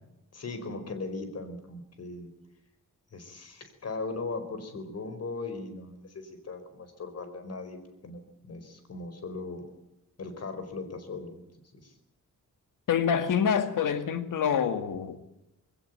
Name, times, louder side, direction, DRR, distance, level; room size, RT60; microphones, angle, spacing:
voice 1, 0.3-2.3 3.1-7.8 8.0-9.6 10.2-11.4 11.8-11.9, left 3 dB, 50° left, 4.8 m, -38 dB
voice 2, 12.9-15.2, left 7 dB, 80° left, 2.2 m, -26 dB
20.5 x 17.5 x 9.3 m
wide cardioid pair, 125°, 32 cm